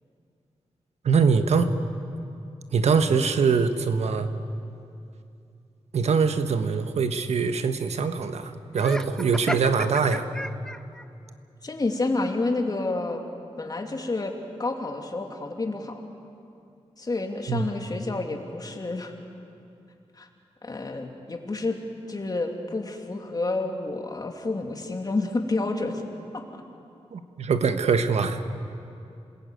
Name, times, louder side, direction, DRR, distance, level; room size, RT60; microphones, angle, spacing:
voice 1, 1.0-1.7 2.7-4.3 5.9-10.3 17.5-17.7 27.1-28.4, right 5 dB, 85° right, 9 dB, 1.3 m, -23 dB
Laughter, 8.7-11.1, left 1 dB, 5° left, 0.5 m, -34 dB
voice 2, 11.6-13.2 13.6-14.3 14.6-16.0 17.0-19.1 20.2-20.3 20.6-21.8 22.1-26.0 26.3-26.6, left 2 dB, 35° left, 3 dB, 2.8 m, -29 dB
27.0 x 20.5 x 9.3 m, 2.6 s
wide cardioid pair, 105°, 11 cm